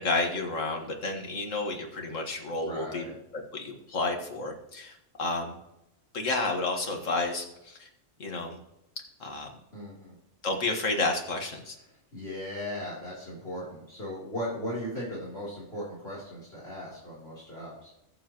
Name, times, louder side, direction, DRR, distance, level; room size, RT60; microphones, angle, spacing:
voice 1, 0.0-3.0 3.3-5.6 6.1-7.9 8.2-8.6 9.2-9.5 10.4-11.7, left 3 dB, 80° left, 3 dB, 2.0 m, -31 dB
voice 2, 2.6-3.1 9.7-10.2 12.1-17.9, equal, 50° left, -7 dB, 3.6 m, -37 dB
20.5 x 7.3 x 3.0 m, 0.85 s
omnidirectional pair, 1.3 m